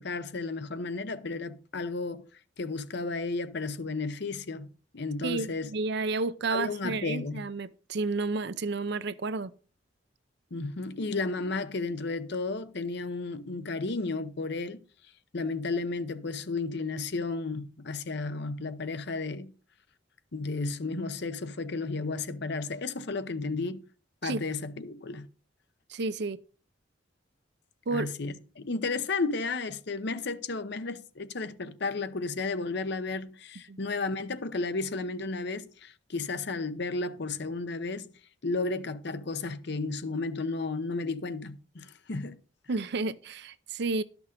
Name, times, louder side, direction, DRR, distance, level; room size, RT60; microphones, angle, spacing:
voice 1, 0.0-2.2 2.6-4.7 4.9-5.7 6.5-7.5 10.5-14.8 15.3-19.5 20.3-23.9 24.2-25.3 27.9-38.1 38.4-42.4, left 3 dB, 65° left, 0.8 m, -33 dB
voice 2, 5.2-9.5 24.2-24.4 25.9-26.4 27.9-28.1 33.7-33.8 42.7-44.0, right 3 dB, 60° right, 0.6 m, -31 dB
12.0 x 6.1 x 5.2 m
head